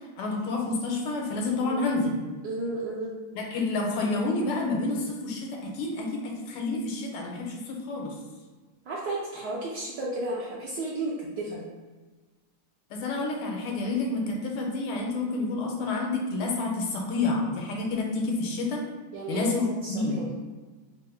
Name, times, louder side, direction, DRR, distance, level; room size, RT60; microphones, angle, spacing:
voice 1, 0.2-2.2 3.3-8.2 12.9-18.8 19.3-20.3, left 3 dB, 90° left, 0 dB, 1.6 m, -29 dB
voice 2, 2.4-3.1 8.9-11.6 19.1-19.6 19.8-20.2, right 1 dB, 75° right, -5 dB, 1.0 m, -33 dB
3.6 x 2.0 x 4.3 m, 1.3 s
omnidirectional pair, 2.4 m